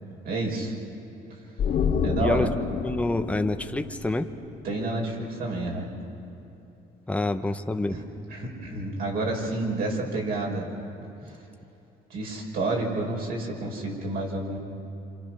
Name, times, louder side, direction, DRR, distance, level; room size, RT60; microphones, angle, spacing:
voice 1, 0.2-0.7 2.0-2.5 4.6-5.9 7.9-8.0 8.3-10.7 12.1-14.6, right 2 dB, 65° right, -1 dB, 5.3 m, -29 dB
sound 1, 1.6-5.0 5.3-5.4, left 6 dB, 60° left, 2.2 m, -29 dB
voice 2, 2.2-2.5 2.8-4.3 7.1-8.0, left 2 dB, 10° left, 6 dB, 0.9 m, -27 dB
27.5 x 27.0 x 6.1 m, 2.8 s
cardioid pair, 110°, 17 cm